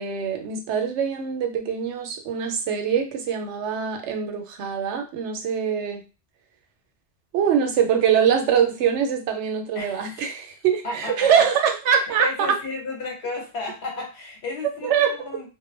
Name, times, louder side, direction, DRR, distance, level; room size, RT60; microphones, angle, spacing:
voice 1, 0.0-6.0 7.3-12.6 14.8-15.2, right 7 dB, 90° right, 5 dB, 0.9 m, -23 dB
voice 2, 9.7-10.3 10.8-11.5 12.2-15.5, left 3 dB, 70° left, 1 dB, 1.1 m, -33 dB
2.1 x 2.1 x 3.1 m, 0.30 s
omnidirectional pair, 1.1 m